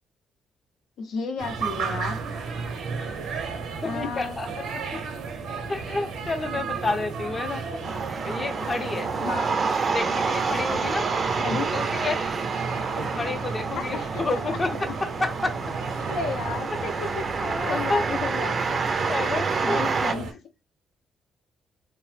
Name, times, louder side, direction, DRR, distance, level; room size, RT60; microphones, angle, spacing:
voice 1, 1.0-2.2 3.8-4.4 9.2-9.6 11.4-11.7 13.8-14.1 16.0-17.1 17.7-18.6 19.6-20.4, left 4 dB, 80° left, 0.6 m, -32 dB
Ext Old San Juan Amb, 1.4-20.3, right 5 dB, 80° right, 0.6 m, -34 dB
voice 2, 3.8-5.0 5.7-7.8 8.2-9.1 9.8-11.1 11.5-12.2 13.0-14.9 15.2-15.5 17.4-18.0 19.0-19.8, left 3 dB, 30° left, 0.5 m, -30 dB
sound 1, 7.8-20.1, right 4 dB, 40° right, 0.4 m, -28 dB
2.9 x 2.0 x 3.2 m
cardioid pair, 90°, 0 cm